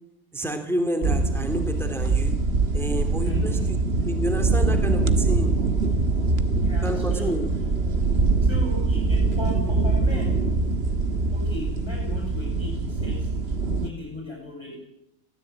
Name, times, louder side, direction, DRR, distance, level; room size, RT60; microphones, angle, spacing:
voice 1, 0.3-2.3 2.7-3.8 4.0-5.5 6.8-7.5, equal, ahead, 6 dB, 2.5 m, -29 dB
sound 1, 1.0-13.9, right 3 dB, 45° right, 1.6 m, -23 dB
voice 2, 3.2-3.7 6.5-7.3 8.4-10.4 11.3-13.3 13.7-14.8, left 1 dB, 20° left, 0 dB, 7.8 m, -37 dB
23.0 x 17.5 x 8.8 m, 0.80 s
omnidirectional pair, 1.5 m